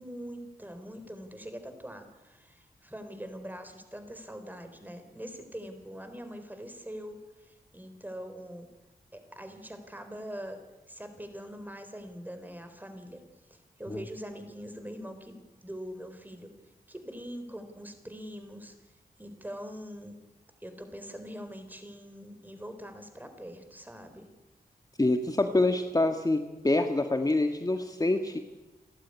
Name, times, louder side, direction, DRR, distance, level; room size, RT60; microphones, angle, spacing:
voice 1, 0.0-8.7 9.1-13.2 13.5-16.5 16.9-18.7 19.2-20.2 20.6-24.3, equal, 10° right, 8 dB, 4.0 m, -43 dB
voice 2, 25.0-28.4, left 2 dB, 25° left, 6 dB, 1.6 m, -26 dB
30.0 x 11.5 x 9.9 m, 1.1 s
wide cardioid pair, 80°, 16 cm